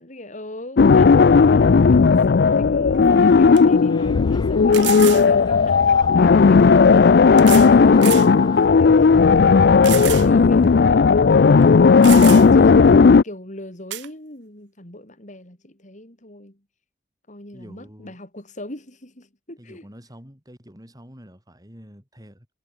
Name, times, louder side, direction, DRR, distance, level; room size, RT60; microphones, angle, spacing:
voice 1, 0.0-8.2 8.8-9.7 10.1-11.7 12.5-16.6 17.3-19.9, left 1 dB, 45° left, 6.1 m, -39 dB
weird noise, 0.8-13.2, left 5 dB, 65° left, 0.4 m, -14 dB
sound 1, 2.9-3.0 3.6-3.7 4.7-5.3 6.4-6.5 7.4-7.7 8.0-8.3 8.8-8.9 9.8-10.3 10.6-10.7 11.6-11.7 12.0-12.7 13.9-14.1, right 16 dB, 70° right, 0.5 m, -29 dB
sound 2, 3.1-8.7, left 2 dB, 25° left, 1.5 m, -40 dB
voice 2, 8.9-9.7 17.5-18.2 19.6-22.5, equal, 20° right, 6.9 m, -43 dB
head